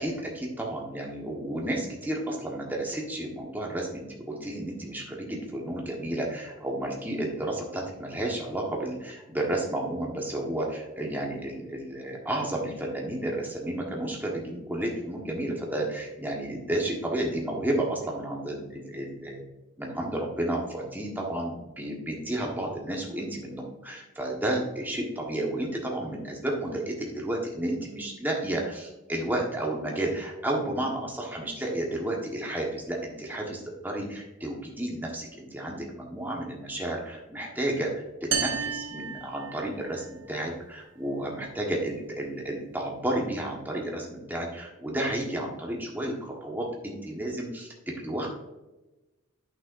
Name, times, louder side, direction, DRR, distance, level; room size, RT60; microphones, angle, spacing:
voice 1, 0.0-19.4 19.8-48.3, right 1 dB, 10° right, -1 dB, 1.3 m, -32 dB
sound 1, 38.3-40.0, right 7 dB, 65° right, 0.9 m, -32 dB
8.6 x 6.3 x 2.6 m, 1.0 s
head